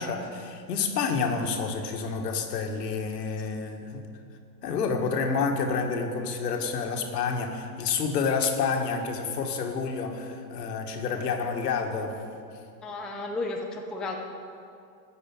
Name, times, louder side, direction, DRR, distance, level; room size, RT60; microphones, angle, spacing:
voice 1, 0.0-4.0 4.6-12.2, left 5 dB, 80° left, 4 dB, 1.7 m, -29 dB
voice 2, 12.8-14.2, left 2 dB, ahead, 0 dB, 0.4 m, -33 dB
13.5 x 5.0 x 8.6 m, 2.4 s
hypercardioid pair, 130°, 48 cm